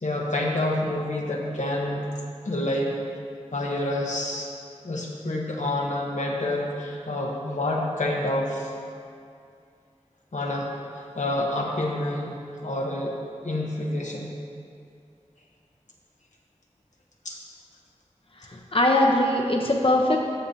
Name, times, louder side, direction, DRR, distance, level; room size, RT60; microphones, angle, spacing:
voice 1, 0.0-2.1 2.4-2.9 3.5-4.5 4.8-8.7 10.3-10.7 11.1-13.1 13.4-14.3 17.2-17.4, left 1 dB, 85° left, -2 dB, 1.1 m, -28 dB
voice 2, 18.5-20.2, left 1 dB, 50° left, 0 dB, 0.8 m, -21 dB
14.0 x 6.6 x 2.8 m, 2.3 s
wide cardioid pair, 45°, 12 cm